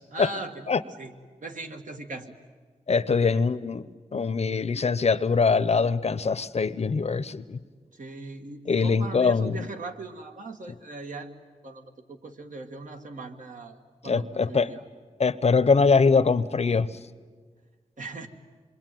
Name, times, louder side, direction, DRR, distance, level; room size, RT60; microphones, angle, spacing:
voice 1, 0.1-1.1 1.4-2.3 3.1-3.5 7.9-11.3 11.6-14.8 18.0-18.3, right 3 dB, 70° right, 4 dB, 1.8 m, -39 dB
voice 2, 2.9-3.9 4.1-7.6 8.7-9.7 14.0-14.7 15.2-16.9, left 4 dB, 50° left, 14 dB, 0.7 m, -23 dB
26.5 x 23.0 x 9.2 m, 1.5 s
wide cardioid pair, 115°, 14 cm